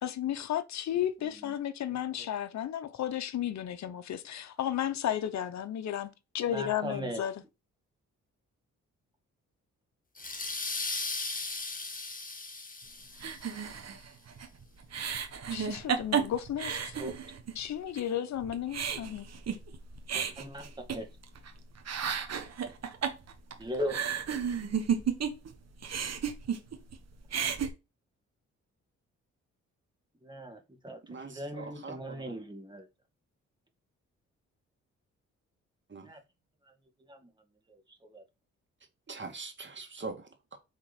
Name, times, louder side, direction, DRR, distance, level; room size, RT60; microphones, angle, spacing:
voice 1, 0.0-7.3 15.5-16.9 17.6-19.3, left 10 dB, 60° left, 0.8 m, -33 dB
voice 2, 0.9-1.5 1.8-2.3 6.5-7.2 16.9-17.2 20.1-21.1 23.6-24.0 27.3-27.4 30.2-32.9 36.0-36.2 36.6-36.7 37.0-37.3 37.7-38.2, equal, 15° right, 1.9 m, -40 dB
sound 1, 10.2-13.6, left 3 dB, 25° left, 1.4 m, -37 dB
sound 2, 13.2-17.6 18.0-18.1 18.4-21.5 21.8-25.5 25.8-27.0 27.2-27.7, right 7 dB, 55° right, 1.3 m, -33 dB
voice 3, 31.1-32.0 32.3-32.4 35.9-36.1 39.1-40.6, right 4 dB, 40° right, 2.1 m, -42 dB
6.4 x 3.7 x 4.2 m
supercardioid pair, 60°, 31 cm